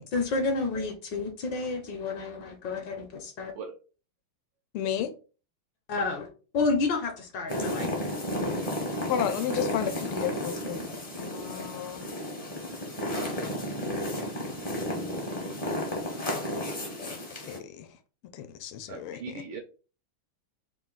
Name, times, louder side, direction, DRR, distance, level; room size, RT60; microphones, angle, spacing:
voice 1, 0.1-3.5 5.9-6.3 6.5-7.9, left 3 dB, 70° left, 1.2 m, -30 dB
voice 2, 4.7-5.1 9.1-10.8 11.2-12.1 13.8-14.2 17.0-18.0 18.3-19.4, left 9 dB, 90° left, 1.5 m, -33 dB
sound 1, 7.5-17.6, left 1 dB, 40° left, 0.5 m, -33 dB
voice 3, 18.9-19.6, right 5 dB, 85° right, 1.5 m, -39 dB
3.8 x 2.4 x 3.7 m
omnidirectional pair, 2.3 m